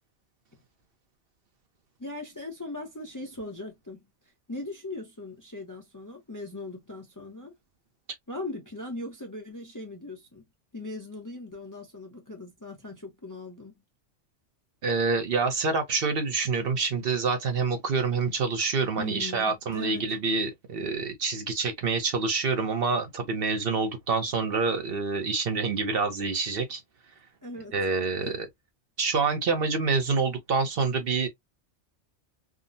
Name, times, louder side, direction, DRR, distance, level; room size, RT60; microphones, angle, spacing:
voice 1, 2.0-4.0 4.5-7.5 8.3-10.4 10.7-13.7 19.0-20.1 27.4-27.8 28.2-28.4, left 2 dB, 20° left, 0.6 m, -39 dB
voice 2, 14.8-26.8 27.7-28.5 29.0-31.3, right 4 dB, 55° right, 0.9 m, -27 dB
3.6 x 2.0 x 2.5 m
omnidirectional pair, 1.2 m